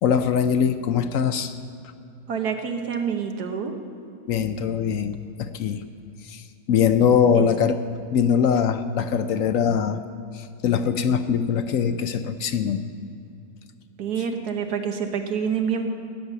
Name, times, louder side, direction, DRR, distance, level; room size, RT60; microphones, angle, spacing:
voice 1, 0.0-1.6 4.3-5.8 6.3-6.4 6.7-7.8 8.1-10.0 10.3-12.9, left 7 dB, 65° left, 10 dB, 0.9 m, -22 dB
voice 2, 2.3-3.7 7.3-7.5 14.0-15.9, right 7 dB, 85° right, 5 dB, 1.7 m, -27 dB
16.5 x 9.9 x 6.8 m, 2.5 s
omnidirectional pair, 1.6 m